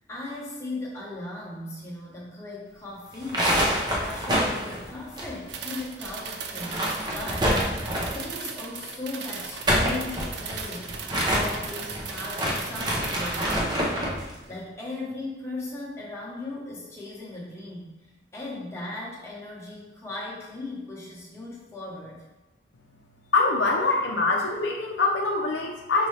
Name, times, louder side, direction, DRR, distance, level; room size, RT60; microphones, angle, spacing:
voice 1, 0.1-3.6 3.9-7.6 8.1-10.9 11.3-14.0 14.5-17.9 18.3-22.2, left 2 dB, 15° left, -5 dB, 1.0 m, -37 dB
sound 1, 3.1-5.8 6.0-6.1 6.5-8.3 9.4-14.2, equal, 25° right, 0.6 m, -27 dB
sound 2, 5.5-13.6, right 6 dB, 65° right, 0.4 m, -38 dB
voice 2, 23.3-26.1, left 3 dB, 75° left, 0 dB, 0.5 m, -24 dB
5.4 x 2.7 x 3.2 m, 1.1 s
head